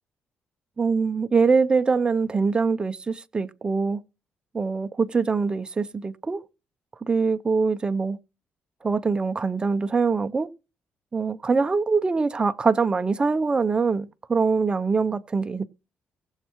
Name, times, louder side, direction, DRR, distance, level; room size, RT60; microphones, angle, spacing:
voice 1, 0.8-4.0 4.5-6.4 7.0-8.2 8.8-10.5 11.1-15.7, right 4 dB, 25° right, 0.6 m, -23 dB
19.5 x 7.3 x 3.0 m
cardioid pair, 120°, 4 cm